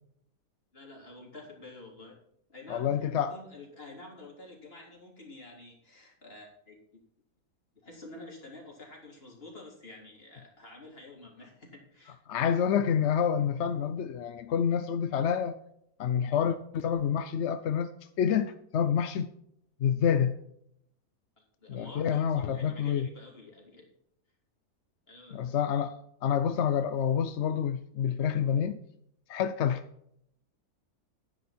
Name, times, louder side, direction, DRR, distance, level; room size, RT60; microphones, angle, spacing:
voice 1, 0.7-2.2 2.5-7.0 7.8-12.2 21.4-23.9 25.1-25.4, left 2 dB, 35° left, 3.8 m, -49 dB
voice 2, 2.7-3.3 12.3-15.6 16.0-17.9 18.2-19.3 19.8-20.4 21.7-23.1 25.3-25.9 26.2-28.8 29.3-29.8, left 8 dB, 60° left, 0.8 m, -28 dB
11.0 x 10.0 x 4.3 m
omnidirectional pair, 1.8 m